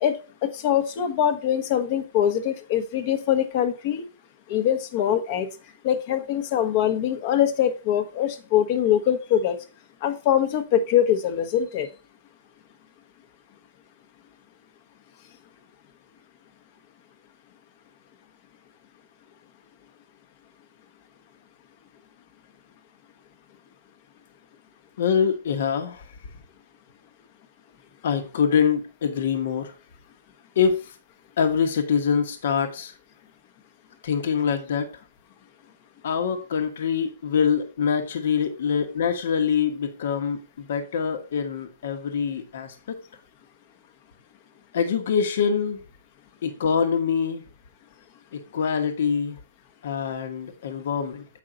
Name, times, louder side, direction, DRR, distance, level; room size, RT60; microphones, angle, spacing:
voice 1, 0.0-4.1 4.5-5.5 5.8-9.6 10.0-11.9, left 10 dB, 35° left, 9 dB, 1.0 m, -23 dB
voice 2, 25.0-26.2 28.0-29.8 30.5-31.0 31.4-32.9 34.0-35.0 36.0-43.0 44.7-45.8 46.4-47.4 48.3-49.4 49.8-51.3, left 6 dB, 65° left, 6 dB, 1.2 m, -25 dB
7.7 x 5.4 x 4.0 m, 0.33 s
hypercardioid pair, 160°, 0 cm